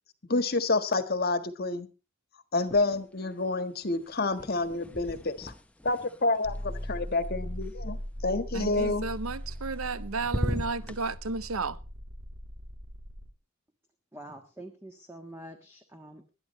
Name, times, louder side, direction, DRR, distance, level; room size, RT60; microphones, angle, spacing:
voice 1, 0.3-1.9 2.5-5.5 5.8-8.0 8.2-9.0, left 3 dB, 45° left, 1.5 m, -28 dB
sound 1, 2.6-3.3 3.6-7.7 9.3-9.9 10.2-11.0, equal, 5° left, 0.9 m, -38 dB
sound 2, 6.4-13.3, equal, 65° right, 2.9 m, -39 dB
voice 2, 8.5-11.8, right 4 dB, 80° right, 0.8 m, -33 dB
voice 3, 14.1-16.3, right 1 dB, 10° right, 1.5 m, -46 dB
20.5 x 11.5 x 3.2 m
head